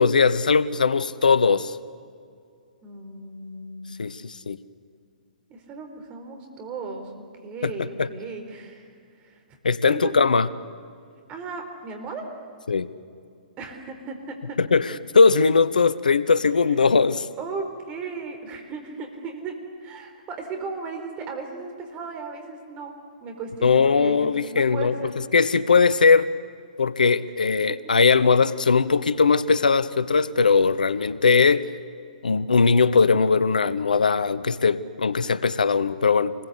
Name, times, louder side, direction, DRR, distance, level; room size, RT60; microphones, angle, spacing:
voice 1, 0.0-1.8 4.0-4.6 7.6-8.1 9.6-10.5 12.7-12.9 14.6-17.3 23.6-24.9 25.3-26.3 26.8-31.7 32.2-36.3, left 5 dB, 75° left, 16 dB, 0.9 m, -20 dB
voice 2, 2.8-3.9 5.5-7.1 7.4-8.9 9.2-9.4 9.9-10.1 11.3-12.3 13.6-14.6 16.7-16.9 17.4-19.5 19.8-22.9 23.2-25.2, right 4 dB, 25° right, 4 dB, 4.5 m, -36 dB
28.0 x 21.0 x 8.3 m, 2.3 s
figure-of-eight pair, 120°, 4 cm